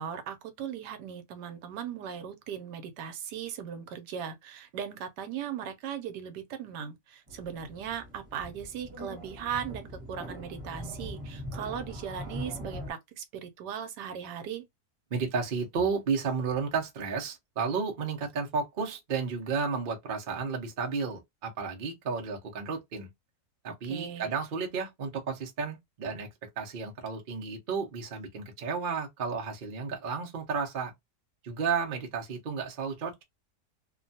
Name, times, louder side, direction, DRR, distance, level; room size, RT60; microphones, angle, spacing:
voice 1, 0.0-14.6 23.7-24.3, right 8 dB, 80° right, 1.2 m, -38 dB
sound 1, 7.3-12.9, equal, 15° right, 0.9 m, -42 dB
voice 2, 15.1-23.1 23.6-26.3 26.6-30.9 31.4-33.2, right 5 dB, 50° right, 0.6 m, -32 dB
3.0 x 2.2 x 2.7 m
omnidirectional pair, 1.8 m